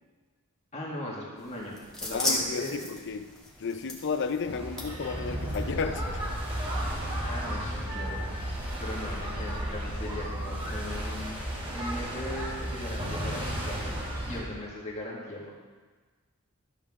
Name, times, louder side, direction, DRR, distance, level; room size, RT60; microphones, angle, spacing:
voice 1, 0.7-2.8 7.1-11.4 11.7-15.5, left 1 dB, 30° left, -5 dB, 2.0 m, -39 dB
sound 1, 1.4-6.5, left 1 dB, 5° left, 1.7 m, -37 dB
voice 2, 2.1-3.3 3.6-6.2, left 5 dB, 60° left, 10 dB, 0.6 m, -33 dB
sound 2, 4.5-14.4, equal, 25° right, 2.9 m, -33 dB
13.0 x 7.2 x 3.7 m, 1.4 s
head